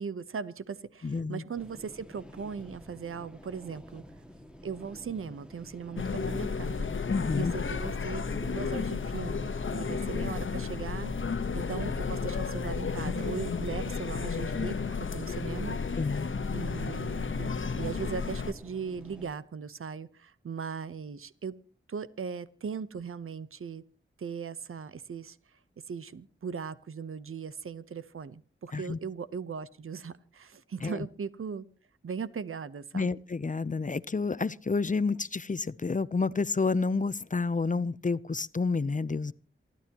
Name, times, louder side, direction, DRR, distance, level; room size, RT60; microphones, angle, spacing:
voice 1, 0.0-4.0 4.6-6.9 7.4-15.8 16.5-21.5 21.9-23.8 24.2-25.6 25.9-31.7 32.0-33.1, right 6 dB, 85° right, 0.9 m, -39 dB
voice 2, 1.0-1.4 7.1-7.5 16.0-16.3 28.7-29.0 30.8-31.0 32.9-39.3, left 4 dB, 40° left, 0.7 m, -29 dB
sound 1, 1.5-19.3, equal, 5° right, 2.0 m, -50 dB
sound 2, 6.0-18.5, left 5 dB, 70° left, 1.1 m, -32 dB
28.0 x 12.0 x 3.0 m
wide cardioid pair, 55°, 21 cm